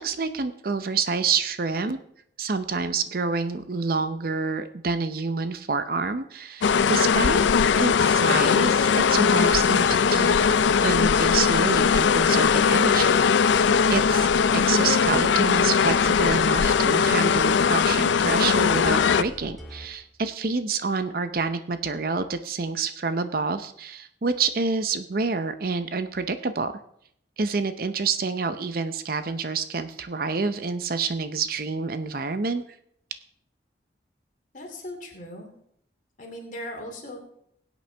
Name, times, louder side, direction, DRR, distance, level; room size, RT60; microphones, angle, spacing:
voice 1, 0.0-2.0 2.4-7.5 7.8-10.4 10.8-13.5 13.9-26.8 27.4-32.6, right 4 dB, 55° right, 10 dB, 0.6 m, -28 dB
sound 1, 6.6-19.2, left 6 dB, 85° left, 0.4 m, -20 dB
sound 2, 9.2-19.9, equal, ahead, 1.9 m, -43 dB
voice 2, 34.5-35.5 36.2-37.2, left 1 dB, 45° left, 1 dB, 2.7 m, -38 dB
21.0 x 8.3 x 3.4 m, 0.70 s
head